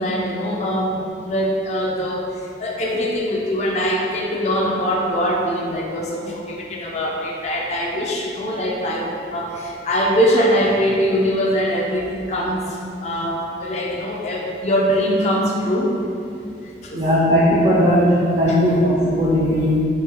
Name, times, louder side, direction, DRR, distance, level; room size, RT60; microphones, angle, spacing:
voice 1, 0.0-15.9 16.8-17.0 18.5-18.6, equal, 35° left, -1 dB, 0.4 m, -22 dB
voice 2, 16.9-19.8, equal, 30° right, -6 dB, 0.4 m, -17 dB
3.0 x 2.7 x 3.7 m, 2.6 s
head